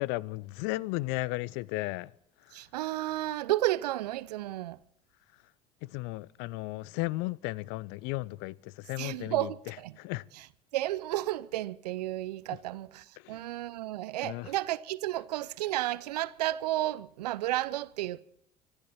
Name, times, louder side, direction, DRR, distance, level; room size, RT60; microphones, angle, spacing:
voice 1, 0.0-2.1 2.5-2.6 5.8-10.2 13.2-13.4 14.2-14.5, left 20 dB, 60° left, 0.5 m, -35 dB
voice 2, 2.5-4.8 9.0-9.9 10.7-18.2, right 15 dB, 75° right, 0.6 m, -32 dB
26.0 x 11.5 x 4.4 m
figure-of-eight pair, 60°, 21 cm